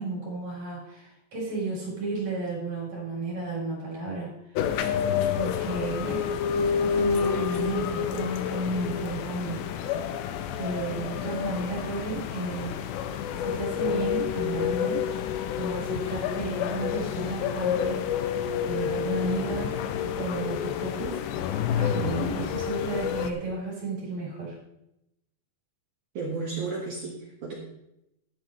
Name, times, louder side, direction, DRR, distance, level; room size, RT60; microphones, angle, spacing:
voice 1, 0.0-4.3 5.4-9.7 10.6-12.8 13.4-15.1 15.6-18.4 18.7-19.8 20.2-21.2 21.7-24.6, right 3 dB, 35° right, -6 dB, 5.4 m, -33 dB
sound 1, 4.6-23.3, left 8 dB, 85° left, 2.8 m, -29 dB
voice 2, 26.1-27.5, right 4 dB, 65° right, -2 dB, 2.0 m, -33 dB
12.5 x 11.0 x 3.2 m, 0.84 s
omnidirectional pair, 5.5 m